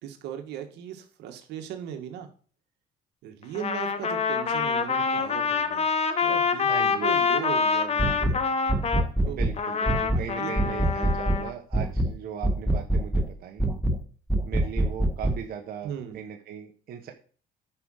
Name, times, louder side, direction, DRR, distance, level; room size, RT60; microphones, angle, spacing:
voice 1, 0.0-2.3 3.2-5.9 6.2-8.4 9.2-9.4 10.1-11.2 15.8-16.2, right 9 dB, 85° right, 5 dB, 1.8 m, -38 dB
Trumpet, 3.5-9.1 9.6-11.5, left 5 dB, 40° left, 1.2 m, -26 dB
voice 2, 6.7-7.2 9.2-13.6 14.4-17.1, right 9 dB, 65° right, 2 dB, 1.5 m, -39 dB
sound 1, 8.0-8.4 8.7-9.6 9.9-10.3 10.6-11.4 11.7-12.1 12.4-13.3 13.6-14.0 14.3-15.4, right 1 dB, 5° right, 1.3 m, -24 dB
9.8 x 5.1 x 6.5 m, 0.42 s
cardioid pair, 110°, 17 cm